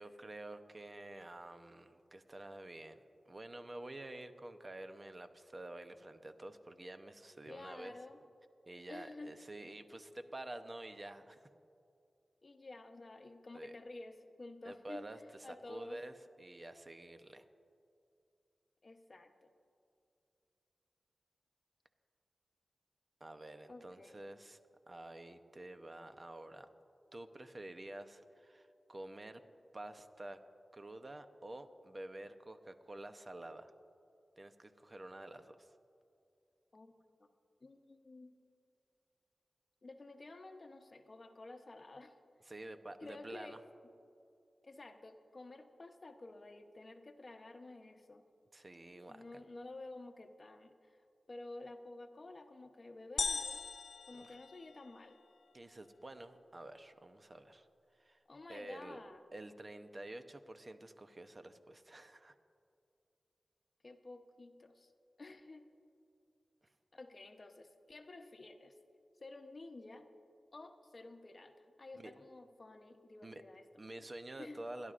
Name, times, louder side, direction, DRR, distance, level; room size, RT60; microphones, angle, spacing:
voice 1, 0.0-7.9 8.7-11.5 13.5-13.7 14.6-17.5 23.2-24.6 24.9-26.7 27.1-29.4 29.7-30.4 30.7-33.7 34.4-35.7 42.5-43.6 48.5-49.4 54.2-54.4 55.5-57.7 58.0-58.2 58.5-59.0 59.3-62.3 72.0-72.1 73.2-73.4 73.8-74.9, right 1 dB, 35° right, 8 dB, 0.7 m, -49 dB
voice 2, 7.5-8.2 8.9-9.4 12.4-15.1 15.4-16.0 18.8-19.5 23.7-24.2 36.7-36.9 37.2-37.3 37.6-38.3 39.8-42.2 43.0-43.6 44.6-48.2 49.1-51.0 51.3-53.7 54.1-55.2 58.3-59.2 63.8-64.9 65.2-65.7 66.9-68.7 69.2-70.1 70.5-73.6 74.4-74.6, left 2 dB, 45° left, 6 dB, 0.8 m, -51 dB
sound 1, 53.2-55.1, left 5 dB, 85° left, 0.3 m, -39 dB
25.5 x 11.0 x 2.5 m, 2.6 s
wide cardioid pair, 70°, 0 cm